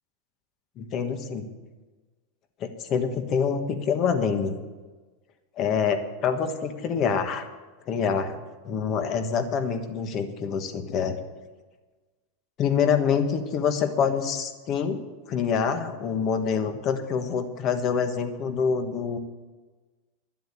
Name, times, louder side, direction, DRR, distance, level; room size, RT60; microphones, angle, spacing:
voice 1, 0.8-1.5 2.6-4.6 5.6-7.5 7.9-8.3 8.6-11.2 12.6-15.0 15.3-19.2, left 6 dB, 40° left, 7 dB, 1.4 m, -26 dB
12.0 x 7.7 x 8.8 m, 1.3 s
supercardioid pair, 130°, 0 cm